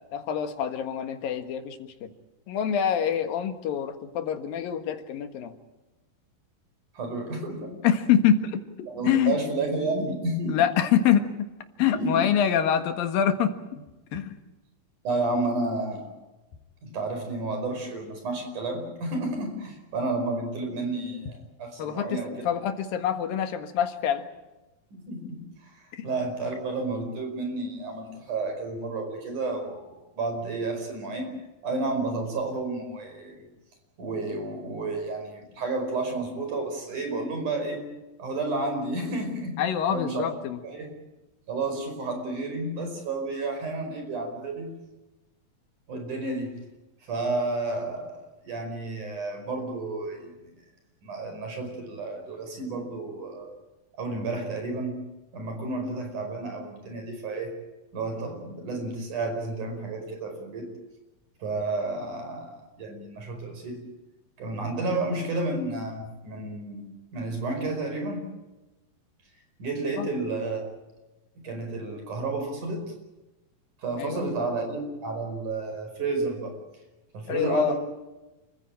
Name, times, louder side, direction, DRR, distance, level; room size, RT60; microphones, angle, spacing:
voice 1, 0.1-2.1 2.5-5.5 7.8-9.4 10.1-10.2 10.5-11.2 11.8-13.8 14.1-14.4 21.8-24.2 25.9-26.1 39.6-40.6 70.0-70.1 74.0-74.3 77.3-77.7, left 9 dB, 75° left, 8 dB, 3.3 m, -26 dB
voice 2, 6.9-7.8 8.9-10.6 11.8-12.2 15.0-16.1 16.8-22.5 24.9-31.3 31.6-33.4 34.0-37.9 38.2-39.6 39.9-40.2 40.6-40.9 41.5-44.7 45.9-46.5 47.1-50.3 51.0-53.5 54.0-55.0 55.3-57.5 57.9-60.7 61.4-63.8 64.4-66.9 67.1-68.3 69.6-70.6 71.4-72.8 73.8-76.5 77.1-77.7, right 2 dB, 60° right, 4 dB, 6.5 m, -31 dB
29.0 x 15.5 x 8.9 m, 1.0 s
omnidirectional pair, 4.1 m